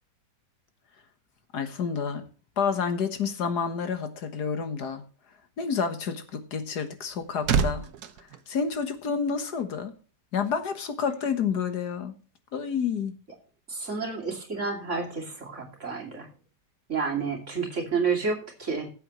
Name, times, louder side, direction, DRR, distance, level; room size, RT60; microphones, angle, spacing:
voice 1, 1.5-2.2 2.6-5.0 5.6-7.9 8.2-9.9 10.3-12.1 12.5-13.1, left 6 dB, 70° left, 9 dB, 1.9 m, -29 dB
sound 1, 6.7-9.4 9.7-9.9, right 6 dB, 70° right, 1.4 m, -30 dB
voice 2, 13.7-16.3 16.9-18.9, right 5 dB, 45° right, 2 dB, 3.0 m, -30 dB
19.0 x 7.9 x 3.1 m, 0.37 s
omnidirectional pair, 1.8 m